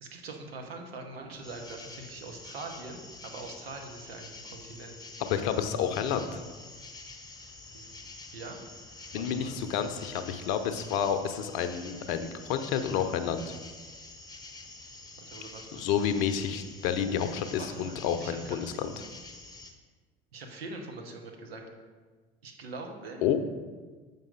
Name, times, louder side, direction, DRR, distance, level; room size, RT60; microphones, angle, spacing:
voice 1, 0.0-5.0 7.7-7.9 8.3-8.6 9.1-9.6 15.3-15.9 17.0-17.2 17.6-18.6 20.3-21.6 22.4-23.2, right 3 dB, 75° right, 2 dB, 1.1 m, -43 dB
sound 1, 1.4-19.7, left 3 dB, 10° left, 0.9 m, -47 dB
voice 2, 5.2-6.4 9.1-13.5 15.7-18.9 23.2-23.4, left 8 dB, 55° left, 9 dB, 0.7 m, -30 dB
7.4 x 5.3 x 3.8 m, 1.4 s
figure-of-eight pair, 65°, 31 cm